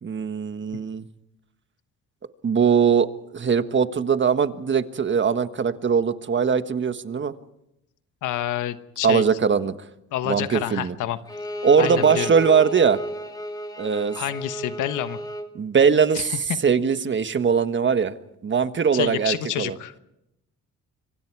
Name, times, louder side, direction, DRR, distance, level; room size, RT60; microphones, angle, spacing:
voice 1, 0.0-1.0 2.4-3.1 3.3-7.3 9.0-9.7 10.3-10.9 11.6-13.0 13.8-14.2 15.5-16.3 16.6-18.1 18.4-19.8, right 6 dB, 40° right, 10 dB, 1.4 m, -21 dB
voice 2, 8.2-9.3 10.1-11.2 11.8-12.3 14.1-15.2 16.1-16.6 18.9-19.9, left 12 dB, 85° left, 12 dB, 1.2 m, -28 dB
Bowed string instrument, 11.3-15.5, right 1 dB, 15° left, 2.4 m, -32 dB
25.5 x 24.5 x 4.7 m, 0.83 s
cardioid pair, 90°, 30 cm